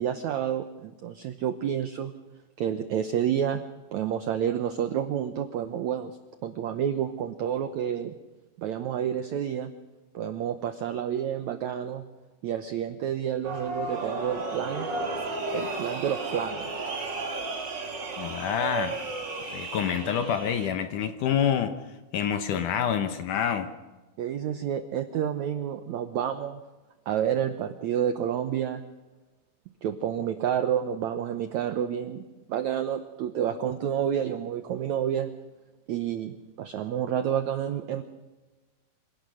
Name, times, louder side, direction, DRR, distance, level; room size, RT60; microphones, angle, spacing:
voice 1, 0.0-2.1 2.6-3.6 3.9-6.2 6.4-8.1 8.6-9.7 10.1-12.1 12.4-14.9 15.5-16.7 24.2-26.6 27.1-28.8 29.8-35.3 35.9-38.0, right 9 dB, 80° right, 9 dB, 1.6 m, -29 dB
sound 1, 13.4-20.7, right 3 dB, 30° right, 2.7 m, -33 dB
voice 2, 18.2-18.9 19.5-21.7 22.1-23.7, left 8 dB, 70° left, 8 dB, 2.1 m, -27 dB
26.5 x 17.0 x 6.4 m, 1.2 s
omnidirectional pair, 4.5 m